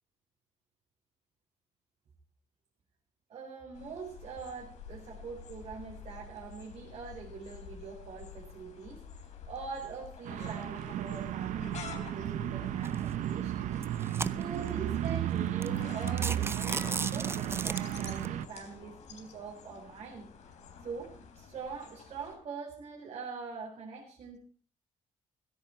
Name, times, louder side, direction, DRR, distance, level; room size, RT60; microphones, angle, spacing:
voice 1, 3.3-20.3 20.8-24.4, right 5 dB, 50° right, -2 dB, 4.2 m, -43 dB
sound 1, 3.7-22.4, left 6 dB, 65° left, 3.6 m, -49 dB
sound 2, 10.2-18.5, right 12 dB, 75° right, 0.8 m, -34 dB
sound 3, 12.8-13.1 13.7-14.7 15.3-15.4 15.6-15.8 16.1-18.3, right 4 dB, 20° right, 0.6 m, -36 dB
16.0 x 13.5 x 4.5 m, 0.43 s
cardioid pair, 140°, 13 cm